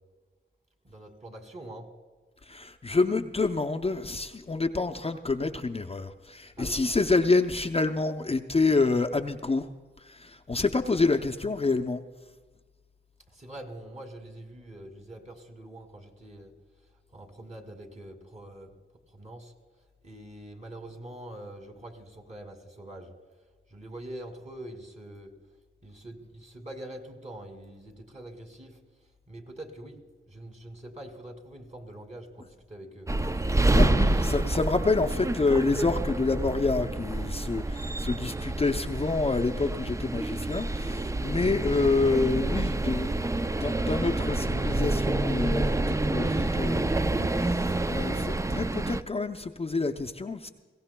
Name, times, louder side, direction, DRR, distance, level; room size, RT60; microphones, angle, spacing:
voice 1, 0.8-1.9 6.6-6.8 13.3-16.5 17.1-18.7 19.1-19.5 20.0-23.1 23.7-25.3 25.8-28.8 29.3-30.0 30.3-33.1 39.5-39.7, right 1 dB, 35° right, 3 dB, 2.5 m, -44 dB
voice 2, 2.4-9.7 10.0-12.0 33.4-43.2 43.6-50.5, left 3 dB, 30° left, 4 dB, 0.6 m, -28 dB
sound 1, 33.1-49.0, right 2 dB, 15° right, 0.4 m, -28 dB
21.5 x 17.0 x 2.2 m, 1.4 s
wide cardioid pair, 75°, 21 cm